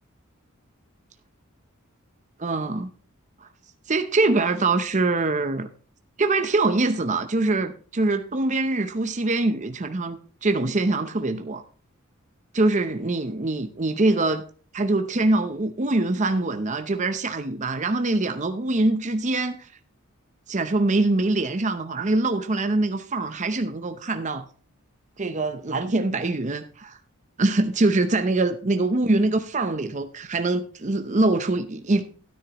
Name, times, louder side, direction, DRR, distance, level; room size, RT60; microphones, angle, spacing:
voice 1, 2.4-2.9 3.9-5.7 6.2-11.6 12.5-14.5 14.7-19.7 20.5-24.4 25.2-27.0 27.4-32.0, right 2 dB, 35° right, 0.7 m, -24 dB
13.0 x 9.9 x 3.0 m
head